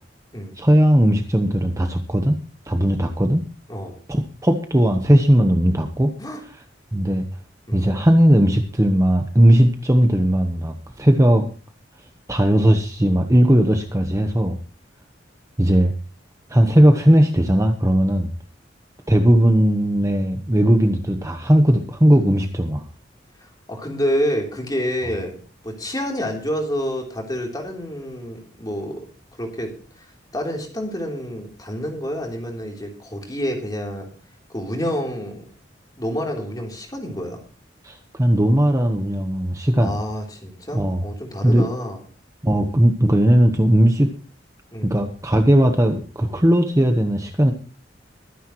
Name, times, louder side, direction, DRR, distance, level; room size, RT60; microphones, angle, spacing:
voice 1, 0.6-2.4 2.7-3.4 4.1-6.1 6.9-7.2 7.7-11.4 12.3-14.6 15.6-15.9 16.5-18.3 19.1-22.8 37.8-40.0 40.7-41.0 41.4-41.7 42.4-44.1 44.8-47.5, equal, 15° right, 5 dB, 1.1 m, -17 dB
voice 2, 23.4-29.0 29.4-29.7 30.0-30.1 30.3-34.1 34.5-35.4 36.0-37.4 39.8-42.0 44.7-45.0, equal, 20° left, 1 dB, 3.4 m, -28 dB
23.0 x 10.0 x 3.1 m, 0.37 s
head